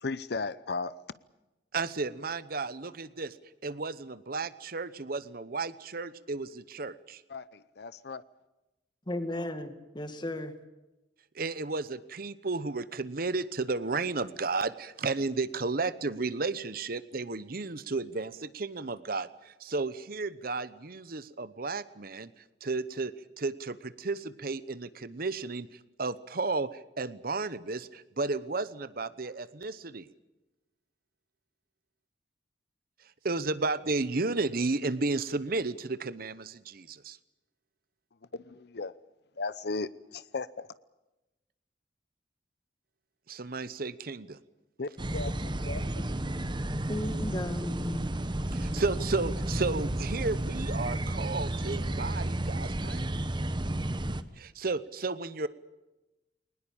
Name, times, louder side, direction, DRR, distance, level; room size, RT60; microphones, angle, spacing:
voice 1, 0.0-1.0 7.3-8.2 38.7-38.9 39.4-40.7 44.8-46.0, left 3 dB, 65° left, 0.7 m, -36 dB
voice 2, 1.7-3.4 3.6-7.2 11.3-30.1 33.2-37.2 43.3-44.4 48.5-53.2 54.4-55.5, right 3 dB, 55° right, 0.9 m, -33 dB
voice 3, 9.1-10.5 46.9-48.2, left 1 dB, 25° left, 2.0 m, -35 dB
sound 1, 45.0-54.2, right 1 dB, 25° right, 1.0 m, -32 dB
21.5 x 20.0 x 8.7 m
head